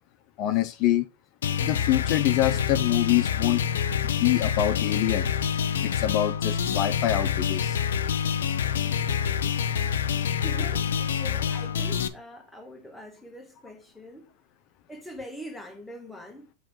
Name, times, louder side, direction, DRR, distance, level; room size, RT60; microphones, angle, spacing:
voice 1, 0.4-1.1 1.6-3.6 4.2-5.3 5.8-7.8, left 14 dB, 45° left, 0.5 m, -25 dB
sound 1, 1.4-12.1, left 8 dB, 80° left, 0.7 m, -26 dB
voice 2, 8.8-9.6 10.3-14.3 14.9-16.5, equal, 5° left, 1.2 m, -44 dB
7.5 x 3.1 x 5.0 m
hypercardioid pair, 120°, 0 cm